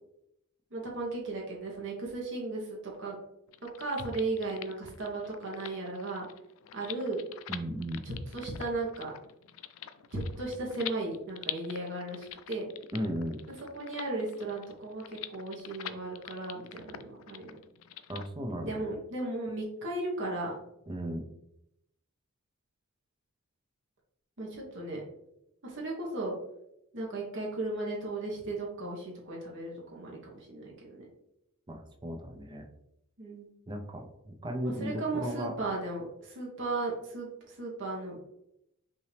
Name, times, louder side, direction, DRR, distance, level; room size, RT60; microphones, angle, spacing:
voice 1, 0.7-3.2 3.8-6.3 6.7-7.2 8.0-9.1 10.1-12.7 13.7-17.5 18.6-20.5 24.4-25.0 25.6-26.3 26.9-31.1 33.2-33.5 34.6-38.2, right 2 dB, 60° right, -2 dB, 1.1 m, -36 dB
sound 1, 3.5-18.3, left 11 dB, 65° left, 0.3 m, -45 dB
voice 2, 7.5-8.0 12.9-13.4 18.1-18.8 20.9-21.3 31.7-32.7 33.7-35.6, equal, 20° right, 4 dB, 0.6 m, -36 dB
5.6 x 2.7 x 3.3 m, 0.81 s
head